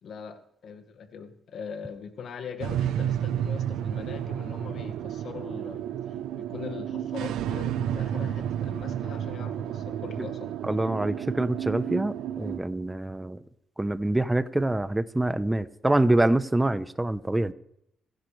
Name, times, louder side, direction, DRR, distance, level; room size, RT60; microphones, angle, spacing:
voice 1, 0.0-5.9 6.4-10.5, left 6 dB, 65° left, 7 dB, 1.9 m, -41 dB
sound 1, 2.6-12.6, right 10 dB, 85° right, 0.7 m, -31 dB
voice 2, 10.6-13.4 13.8-17.5, right 1 dB, 10° right, 13 dB, 0.9 m, -25 dB
27.5 x 10.5 x 3.4 m, 0.75 s
cardioid pair, 90°, 0 cm